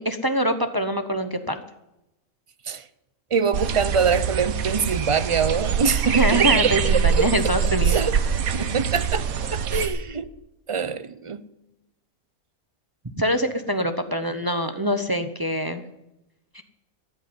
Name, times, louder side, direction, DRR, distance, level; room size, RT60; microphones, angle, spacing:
voice 1, 0.0-1.6 6.1-8.0 13.2-15.8 16.5-16.6, equal, 20° right, 0.7 m, -24 dB
voice 2, 3.3-7.3 7.9-9.2 9.5-10.3 10.7-11.4, right 6 dB, 50° right, 0.3 m, -24 dB
sound 1, 3.5-9.9, right 7 dB, 80° right, 1.4 m, -24 dB
14.0 x 8.5 x 9.5 m
omnidirectional pair, 1.5 m